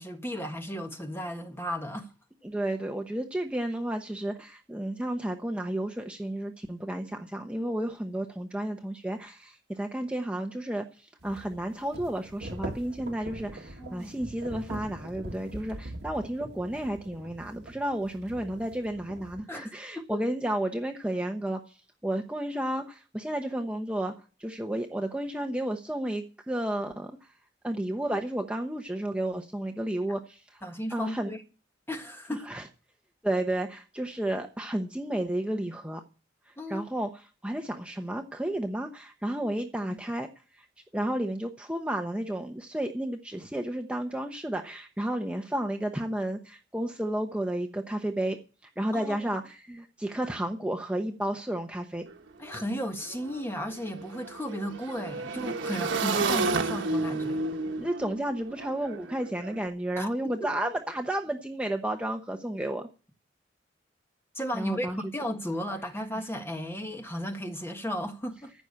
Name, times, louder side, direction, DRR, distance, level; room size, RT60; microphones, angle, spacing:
voice 1, 0.0-2.1 13.8-14.1 19.5-20.2 30.6-31.4 31.9-32.6 36.6-36.9 39.9-40.0 45.5-45.6 48.9-49.3 52.4-57.4 60.0-60.3 64.3-68.5, equal, 15° left, 1.5 m, -35 dB
voice 2, 2.4-21.8 22.0-24.1 24.4-27.1 27.6-30.6 30.9-31.3 32.5-32.6 33.2-36.0 36.5-40.3 40.5-40.7 40.9-52.1 57.8-62.9 64.5-65.0, right 1 dB, 5° right, 0.9 m, -32 dB
sound 1, 11.2-19.4, right 1 dB, 65° right, 1.6 m, -42 dB
Motorcycle / Engine, 52.1-52.2 52.4-59.6, right 3 dB, 85° right, 1.1 m, -32 dB
14.5 x 6.1 x 8.7 m
head